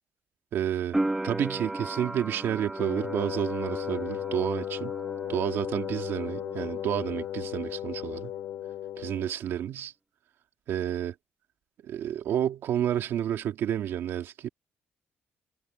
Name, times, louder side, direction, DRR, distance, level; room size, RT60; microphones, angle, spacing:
voice 1, 0.5-1.0 1.2-4.9 5.3-8.3 9.0-9.9 10.7-11.1 11.8-14.5, right 10 dB, 65° right, 2.1 m, -30 dB
sound 1, 0.9-7.7 8.0-8.9, right 2 dB, 10° right, 1.1 m, -36 dB
Wind instrument woodwind instrument, 2.8-9.3, left 12 dB, 80° left, 4.3 m, -35 dB
cardioid pair, 165°, 4 cm